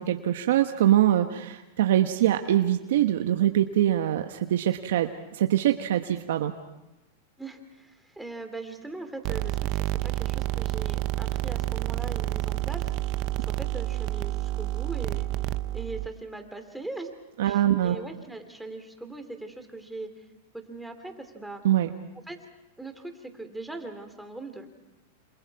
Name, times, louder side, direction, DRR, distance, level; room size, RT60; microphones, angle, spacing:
voice 1, 0.0-6.5 17.4-18.0 21.6-21.9, right 12 dB, 75° right, 6 dB, 1.2 m, -23 dB
voice 2, 7.4-15.3 15.7-17.1 17.4-20.2 20.5-21.6 22.1-22.4 22.8-24.7, right 2 dB, 5° right, 5 dB, 3.0 m, -40 dB
sound 1, 9.2-16.1, right 16 dB, 50° right, 0.8 m, -29 dB
28.0 x 27.5 x 4.8 m, 1.0 s
hypercardioid pair, 125°, 0 cm